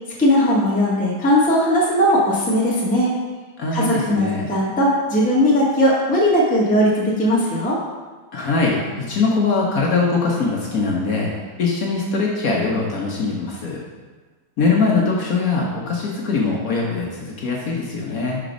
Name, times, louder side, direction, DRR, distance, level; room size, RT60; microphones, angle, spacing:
voice 1, 0.2-3.1 3.7-7.8, equal, 5° left, -6 dB, 0.9 m, -18 dB
voice 2, 3.6-4.5 8.3-11.3 11.6-13.8 14.6-18.4, left 4 dB, 55° left, -2 dB, 1.0 m, -22 dB
5.0 x 4.5 x 5.0 m, 1.4 s
omnidirectional pair, 2.3 m